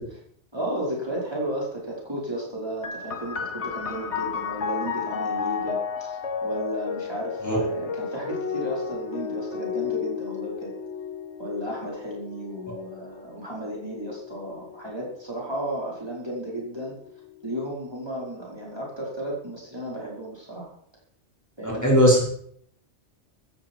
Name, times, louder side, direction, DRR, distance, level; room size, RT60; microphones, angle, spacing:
voice 1, 0.5-10.7 11.4-17.0 17.4-20.7 21.6-21.9, right 1 dB, 20° right, -4 dB, 5.2 m, -33 dB
sound 1, 2.8-16.1 16.9-17.7, left 6 dB, 75° left, 1.9 m, -33 dB
voice 2, 21.6-22.2, equal, 15° left, -4 dB, 5.4 m, -18 dB
16.0 x 14.0 x 4.7 m, 0.65 s
omnidirectional pair, 1.2 m